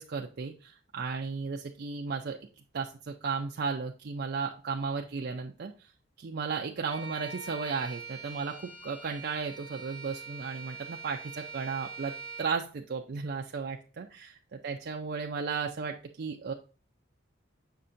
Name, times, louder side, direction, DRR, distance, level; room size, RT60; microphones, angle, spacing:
voice 1, 0.0-2.4 2.7-5.9 6.2-16.5, right 5 dB, 50° right, 2 dB, 0.4 m, -35 dB
Bowed string instrument, 6.9-12.6, right 4 dB, 25° left, 0.9 m, -44 dB
7.2 x 5.6 x 2.5 m, 0.36 s
head